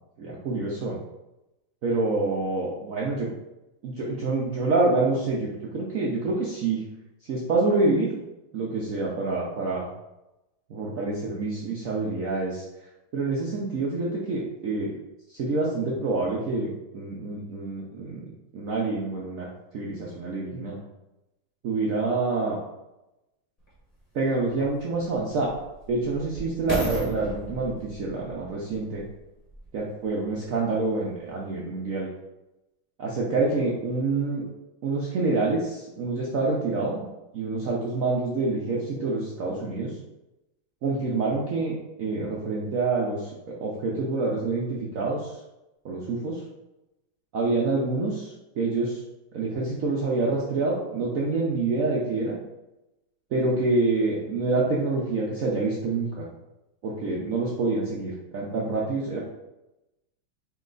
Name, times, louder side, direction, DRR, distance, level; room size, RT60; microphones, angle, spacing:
voice 1, 0.2-1.0 1.8-3.3 3.8-6.8 7.2-8.1 8.5-9.9 10.7-12.6 13.1-14.9 15.3-18.2 18.5-19.5 19.7-20.8 21.6-22.6 24.1-25.5 25.9-29.0 29.7-32.1 33.0-34.5 34.8-37.1 37.3-39.9 40.8-43.3 43.6-45.4 45.8-46.4 47.3-49.0 49.3-52.4 53.3-56.3 56.8-59.2, right 3 dB, 70° right, -3 dB, 0.7 m, -27 dB
sound 1, 23.7-23.8 24.5-29.8 30.4-30.5, right 1 dB, 20° left, 1.2 m, -36 dB
4.3 x 3.0 x 3.8 m, 0.96 s
omnidirectional pair, 2.2 m